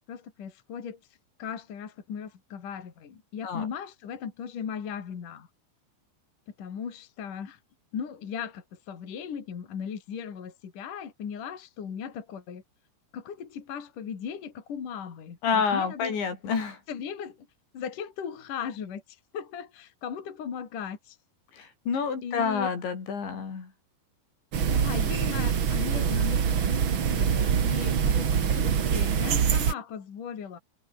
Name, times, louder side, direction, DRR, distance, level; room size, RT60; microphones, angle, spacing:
voice 1, 0.1-1.0 1.4-5.5 6.6-7.6 7.9-12.6 13.1-16.2 16.9-17.5 17.7-21.2 22.2-22.7 24.7-30.6, left 7 dB, 45° left, 4.2 m, -37 dB
voice 2, 15.4-16.8 21.5-23.7, left 6 dB, 70° left, 7.8 m, -28 dB
sound 1, 24.5-29.7, right 7 dB, 80° right, 1.1 m, -24 dB
omnidirectional pair, 5.3 m